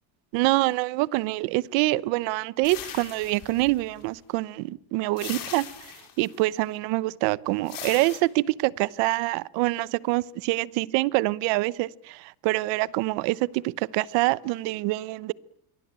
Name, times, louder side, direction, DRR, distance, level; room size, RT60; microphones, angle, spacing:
voice 1, 0.3-5.9 6.2-15.3, right 20 dB, 80° right, 1.0 m, -26 dB
sound 1, 2.6-4.1 5.2-6.4 7.7-8.2, left 9 dB, 50° left, 6.9 m, -39 dB
27.0 x 23.0 x 8.9 m
cardioid pair, 150°, 44 cm